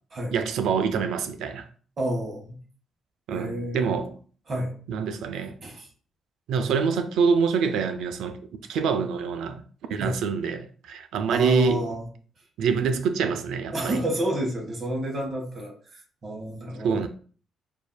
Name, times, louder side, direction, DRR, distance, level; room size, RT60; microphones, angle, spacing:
voice 1, 0.3-1.7 3.3-4.2 4.9-5.6 6.5-8.4 8.7-9.6 9.9-11.9 12.6-14.0 16.8-17.1, right 6 dB, 80° right, 0.4 m, -25 dB
voice 2, 2.0-2.6 3.3-4.0 4.5-4.7 5.6-5.9 10.0-10.2 11.3-12.1 13.7-17.0, right 1 dB, 40° right, 1.5 m, -29 dB
6.8 x 2.7 x 2.2 m
cardioid pair, 90°, 0 cm